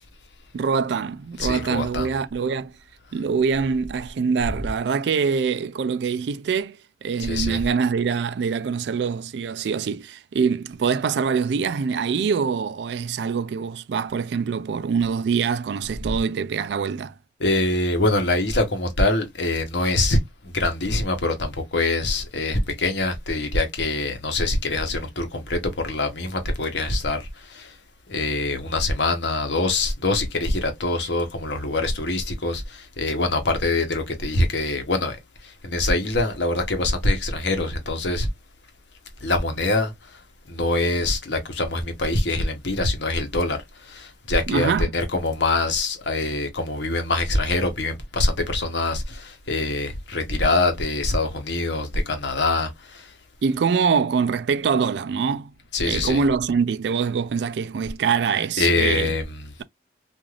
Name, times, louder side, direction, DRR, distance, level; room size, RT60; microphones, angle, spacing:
voice 1, 0.5-2.7 3.1-17.1 44.5-44.9 53.4-55.5 55.8-59.1, right 6 dB, 65° right, 0.3 m, -24 dB
voice 2, 1.4-2.1 7.2-7.6 16.0-16.1 17.4-27.7 28.1-35.2 35.4-38.3 39.2-40.2 40.5-53.1 55.7-56.2 58.6-59.4, left 2 dB, 70° left, 0.9 m, -24 dB
3.2 x 2.5 x 2.3 m
head